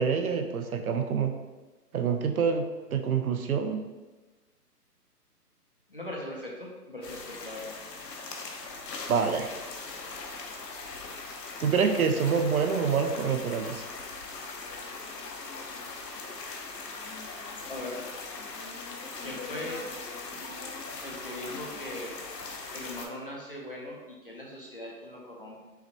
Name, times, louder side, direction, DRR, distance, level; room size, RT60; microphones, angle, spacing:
voice 1, 0.0-1.3 1.9-3.8 9.1-9.5 11.6-13.8, right 6 dB, 65° right, 6 dB, 0.5 m, -26 dB
voice 2, 5.9-7.8 17.7-18.0 19.2-19.8 21.0-22.1 22.7-25.6, left 1 dB, 40° left, -3 dB, 0.4 m, -39 dB
sound 1, 7.0-23.1, left 3 dB, 85° left, 0.8 m, -40 dB
5.6 x 2.2 x 2.7 m, 1.2 s
hypercardioid pair, 155°, 48 cm